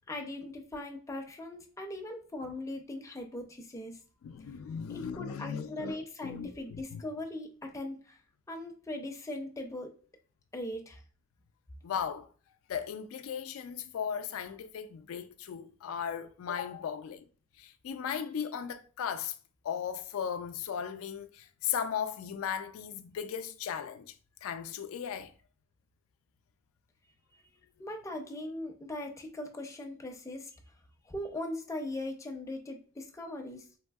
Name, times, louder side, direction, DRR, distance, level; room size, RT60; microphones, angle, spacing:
voice 1, 0.1-4.0 4.9-8.2 8.5-9.9 10.5-11.0 27.3-27.5 27.8-30.5 31.0-33.7, left 1 dB, 15° left, 0.5 m, -40 dB
voice 2, 4.2-7.0 11.8-12.3 12.7-17.2 17.6-19.4 19.6-24.1 24.4-25.3, left 8 dB, 85° left, 0.3 m, -37 dB
3.4 x 2.6 x 2.3 m
head